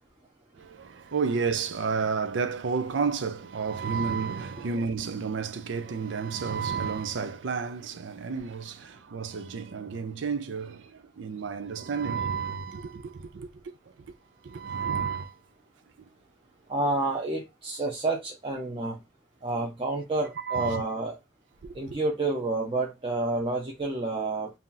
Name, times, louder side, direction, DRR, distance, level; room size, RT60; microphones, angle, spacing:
voice 1, 0.6-13.5 14.4-15.3 20.4-20.8 21.6-21.7, right 5 dB, 85° right, 0.5 m, -31 dB
voice 2, 16.7-19.0 19.4-21.2 21.7-24.5, right 2 dB, 30° right, 0.6 m, -29 dB
2.8 x 2.5 x 3.8 m
head